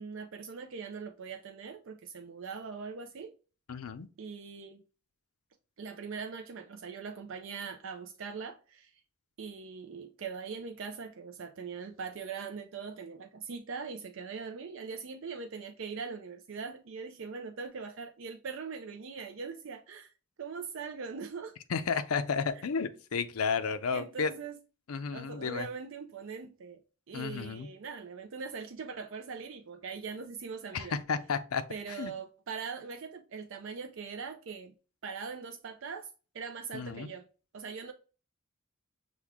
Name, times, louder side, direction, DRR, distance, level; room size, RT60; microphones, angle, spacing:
voice 1, 0.0-3.3 4.2-4.8 5.8-8.9 9.4-20.1 20.4-21.5 23.9-24.5 25.1-26.8 27.1-31.0 31.7-34.7 35.0-37.3 37.5-37.9, right 5 dB, 65° right, 0.4 m, -41 dB
voice 2, 3.7-4.1 21.7-24.3 24.9-25.7 27.1-27.7 30.7-31.6 32.0-32.1 36.7-37.1, left 5 dB, 85° left, 0.5 m, -32 dB
6.2 x 2.2 x 3.5 m
head